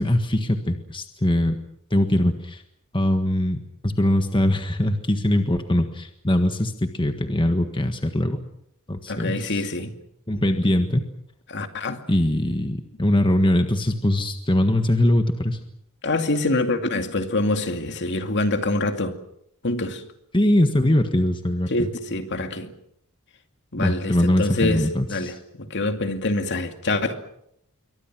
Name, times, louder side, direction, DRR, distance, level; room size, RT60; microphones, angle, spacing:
voice 1, 0.0-1.6 1.9-2.6 2.9-8.4 8.9-9.6 10.3-11.1 12.1-15.6 20.3-21.9 23.8-25.3, left 1 dB, 20° left, 1.6 m, -22 dB
voice 2, 9.1-10.0 11.5-12.0 16.0-19.2 19.6-20.1 21.7-22.7 23.7-27.2, left 2 dB, 55° left, 2.4 m, -25 dB
27.5 x 24.0 x 6.2 m
head